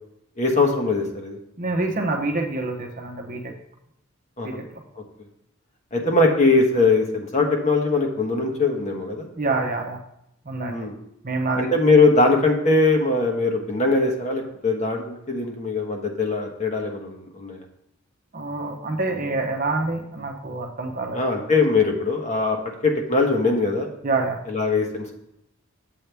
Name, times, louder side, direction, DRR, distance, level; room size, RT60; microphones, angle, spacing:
voice 1, 0.4-1.4 4.4-4.6 5.0-5.1 5.9-9.3 10.7-11.0 11.6-17.6 21.1-22.6 22.8-23.9 24.5-25.1, left 3 dB, 35° left, 2 dB, 1.2 m, -21 dB
voice 2, 1.6-3.5 4.4-4.8 9.4-10.0 10.5-10.7 11.2-11.7 18.3-21.2 24.0-24.4, right 3 dB, 40° right, 2 dB, 0.9 m, -26 dB
8.3 x 7.7 x 3.4 m, 0.80 s
head